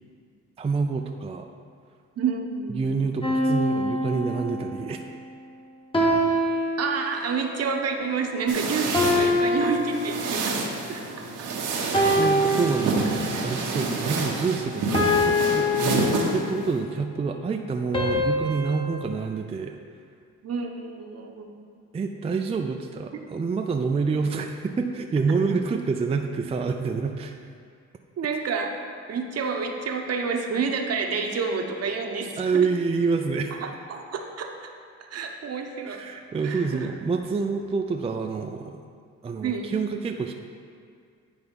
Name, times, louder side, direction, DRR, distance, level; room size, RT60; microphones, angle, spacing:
voice 1, 0.6-1.5 2.7-5.0 12.1-19.8 21.9-27.4 32.4-33.6 35.9-38.7 39.2-40.3, right 4 dB, 20° right, 4 dB, 0.4 m, -27 dB
voice 2, 2.2-2.8 6.8-11.5 11.9-12.3 13.2-13.5 20.4-21.5 23.1-23.2 28.2-28.8 29.1-32.6 33.6-34.7 35.1-36.0 36.4-36.9 39.4-39.7, right 5 dB, 55° right, 3 dB, 0.9 m, -29 dB
sound 1, 3.2-4.9 5.9-7.4 8.9-10.6 11.9-13.5 14.9-16.7 17.9-19.0, left 1 dB, 15° left, 1.1 m, -25 dB
sound 2, 8.5-16.8, right 3 dB, 90° right, 1.1 m, -28 dB
9.7 x 3.5 x 5.3 m, 2.2 s
cardioid pair, 90°, 30 cm